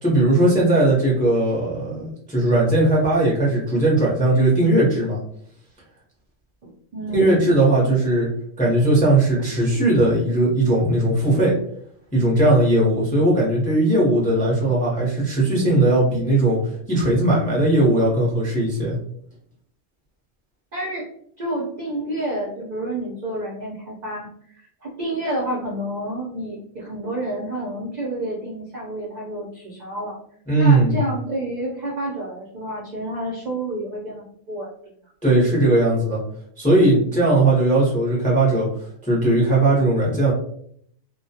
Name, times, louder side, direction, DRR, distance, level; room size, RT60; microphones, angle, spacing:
voice 1, 0.0-5.2 7.1-8.3 8.6-11.6 12.1-16.6 16.9-19.0 30.5-31.0 35.2-36.2 36.6-38.7 39.0-40.3, right 2 dB, 10° left, -5 dB, 0.4 m, -18 dB
voice 2, 6.6-7.4 20.7-21.1 21.4-24.3 24.5-30.2 30.5-34.7, right 1 dB, 60° right, -4 dB, 0.4 m, -29 dB
2.2 x 2.1 x 2.7 m, 0.65 s
omnidirectional pair, 1.4 m